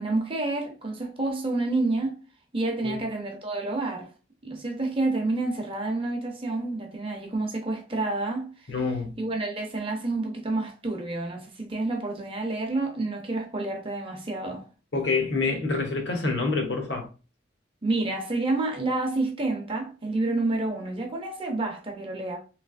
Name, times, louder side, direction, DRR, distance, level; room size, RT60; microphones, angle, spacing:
voice 1, 0.0-2.2 2.5-4.1 4.4-8.5 9.2-14.6 17.8-22.4, right 2 dB, 30° right, 0.7 m, -29 dB
voice 2, 8.7-9.1 14.9-17.1, left 3 dB, 65° left, 1.0 m, -27 dB
3.2 x 3.0 x 2.5 m
head